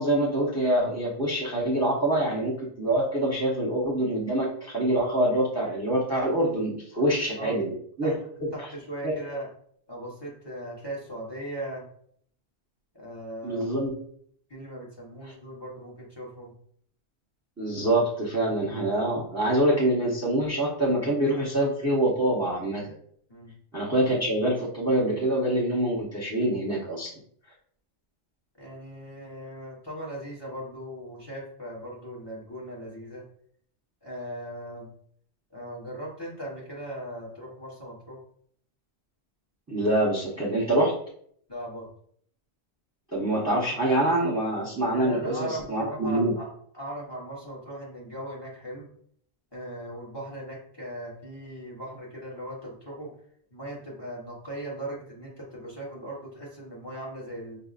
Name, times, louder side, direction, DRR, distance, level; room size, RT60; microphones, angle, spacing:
voice 1, 0.0-7.7 8.0-8.1 13.4-13.9 17.6-22.8 23.7-27.1 39.7-40.9 43.1-46.3, right 1 dB, 15° right, -6 dB, 0.9 m, -25 dB
voice 2, 8.5-9.5 9.9-11.8 12.9-13.7 14.5-16.5 23.3-23.5 28.6-33.2 34.0-34.9 35.5-38.2 41.5-41.9 44.9-46.5 46.7-48.9 49.5-53.1 53.5-57.6, right 1 dB, 25° left, -4 dB, 1.1 m, -38 dB
5.6 x 2.7 x 2.5 m, 0.63 s
omnidirectional pair, 1.1 m